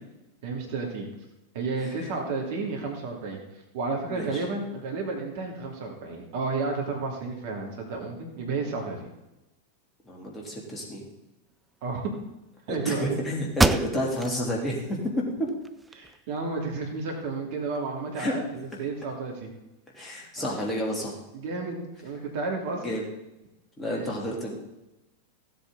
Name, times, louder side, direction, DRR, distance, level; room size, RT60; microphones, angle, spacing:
voice 1, 0.4-1.1 1.5-3.4 3.7-9.1 11.8-12.1 12.7-13.1 15.9-19.5 20.4-20.5 21.3-22.8 23.8-24.0, right 3 dB, 50° right, 1 dB, 2.6 m, -32 dB
voice 2, 4.1-4.4 10.0-11.1 12.7-15.0 15.4-15.5 18.2-18.3 19.9-21.1 22.8-23.0 23.8-24.6, equal, 15° left, -3 dB, 3.2 m, -30 dB
sound 1, 13.5-14.4 14.9-15.0 15.5-16.4, right 2 dB, 5° right, 0.5 m, -26 dB
16.0 x 7.8 x 4.0 m, 0.96 s
figure-of-eight pair, 90°, 0 cm